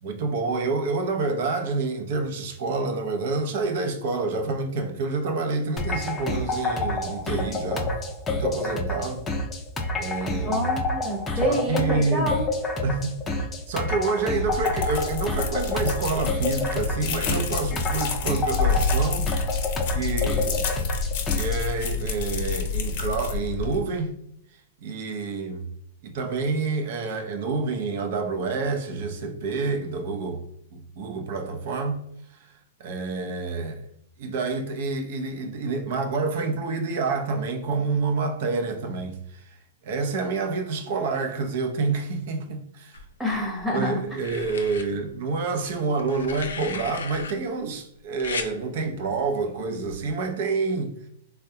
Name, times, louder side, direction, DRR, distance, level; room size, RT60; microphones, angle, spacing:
voice 1, 0.0-7.9 8.3-9.3 9.9-10.6 11.3-12.3 12.8-20.7 21.3-24.1 24.8-25.7 26.0-30.4 30.7-32.0 32.8-33.8 34.2-39.5 39.8-43.0 43.7-50.9, right 4 dB, 60° right, 0.6 m, -28 dB
sound 1, 5.8-21.6, left 2 dB, 15° left, 0.5 m, -28 dB
voice 2, 10.4-12.5 43.2-44.0, left 1 dB, ahead, 0.8 m, -27 dB
sound 2, 14.4-23.8, left 5 dB, 50° left, 0.8 m, -28 dB
sound 3, 42.9-43.6 44.2-44.8 46.0-47.3 48.2-48.5 49.9-50.1, left 5 dB, 90° left, 0.5 m, -35 dB
3.5 x 2.2 x 2.8 m
hypercardioid pair, 135°, 0 cm